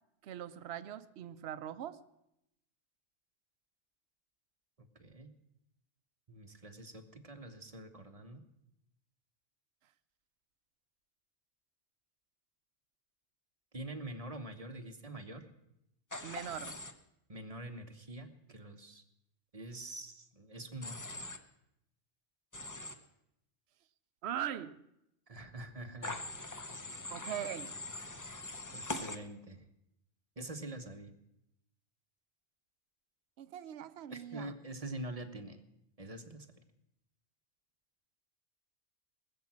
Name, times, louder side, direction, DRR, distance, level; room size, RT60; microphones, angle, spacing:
voice 1, 0.2-2.0 16.2-16.8 24.2-24.9 27.1-27.8 33.4-34.5, right 10 dB, 70° right, 0.9 m, -41 dB
voice 2, 4.8-5.3 6.3-8.4 13.7-15.4 17.3-19.0 19.5-21.0 25.3-26.2 28.7-29.6 30.4-31.1 34.1-35.6 36.0-36.5, right 1 dB, 35° right, 1.0 m, -45 dB
Human voice / Train, 16.1-16.9 20.8-21.4 22.5-22.9 26.0-29.2, left 2 dB, 20° left, 0.7 m, -42 dB
19.5 x 7.3 x 7.4 m
omnidirectional pair, 1.1 m